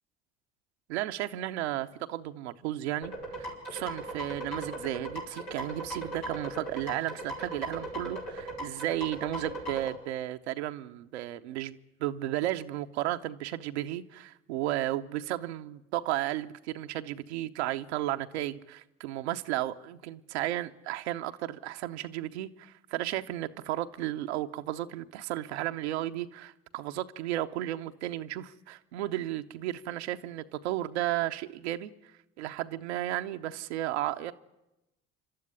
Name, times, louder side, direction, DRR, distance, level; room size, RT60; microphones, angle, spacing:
voice 1, 0.9-31.9 32.4-34.3, right 14 dB, 85° right, 0.8 m, -34 dB
sound 1, 3.0-9.9, right 1 dB, 90° left, 5.4 m, -38 dB
26.5 x 12.5 x 9.7 m
hypercardioid pair, 65°, 32 cm